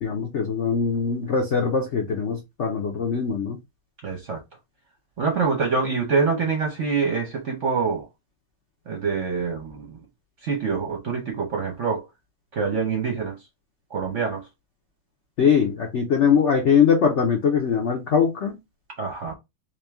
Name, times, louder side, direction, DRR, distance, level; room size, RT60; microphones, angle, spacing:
voice 1, 0.0-3.6 15.4-18.6, left 6 dB, 70° left, 0.6 m, -21 dB
voice 2, 4.0-4.4 5.2-8.1 8.9-10.0 10.4-12.0 12.5-13.4 13.9-14.5 19.0-19.3, right 5 dB, 55° right, 0.9 m, -25 dB
3.6 x 2.8 x 3.5 m
omnidirectional pair, 2.2 m